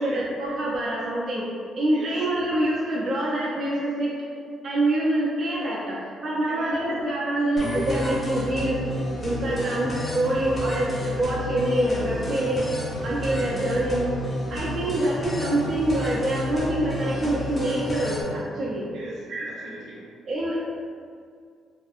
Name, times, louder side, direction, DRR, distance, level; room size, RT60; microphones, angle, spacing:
voice 1, 0.0-1.5 1.8-4.1 4.6-8.8 9.2-12.7 13.0-14.2 14.5-18.9 19.3-19.5 20.3-20.6, right 1 dB, 40° right, -5 dB, 0.3 m, -25 dB
voice 2, 6.5-6.8 18.9-20.1, right 1 dB, 80° right, -5 dB, 0.6 m, -40 dB
sound 1, 7.6-18.2, left 1 dB, 15° left, 0.4 m, -31 dB
2.5 x 2.4 x 2.4 m, 2.1 s
cardioid pair, 160°, 0 cm